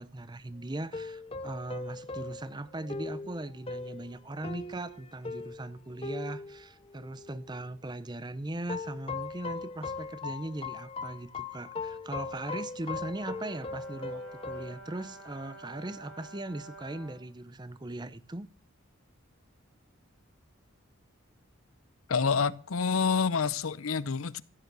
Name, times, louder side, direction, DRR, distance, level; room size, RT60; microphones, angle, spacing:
voice 1, 0.0-18.5, right 2 dB, 20° right, 0.6 m, -39 dB
sound 1, 0.9-7.5 8.7-14.7, left 3 dB, 25° left, 0.7 m, -39 dB
Brass instrument, 12.9-17.3, right 2 dB, 75° right, 4.9 m, -49 dB
voice 2, 22.1-24.4, left 5 dB, 80° left, 0.7 m, -28 dB
15.0 x 9.3 x 6.7 m
head